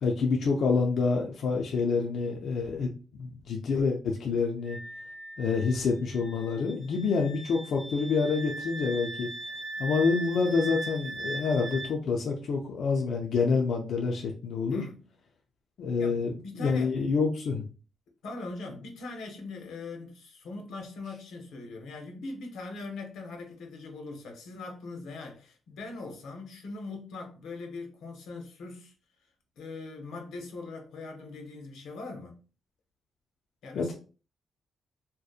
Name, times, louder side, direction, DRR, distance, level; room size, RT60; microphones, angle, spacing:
voice 1, 0.0-4.8 5.4-9.3 9.8-14.8 15.8-17.6 33.8-33.9, left 4 dB, 55° left, 0.3 m, -27 dB
Wind instrument woodwind instrument, 4.7-11.9, right 2 dB, 25° right, 0.3 m, -39 dB
voice 2, 14.7-15.0 16.0-16.9 18.2-28.9 29.6-32.3 33.6-33.9, left 3 dB, 85° left, 0.7 m, -41 dB
2.6 x 2.1 x 2.4 m
wide cardioid pair, 180°, 0 cm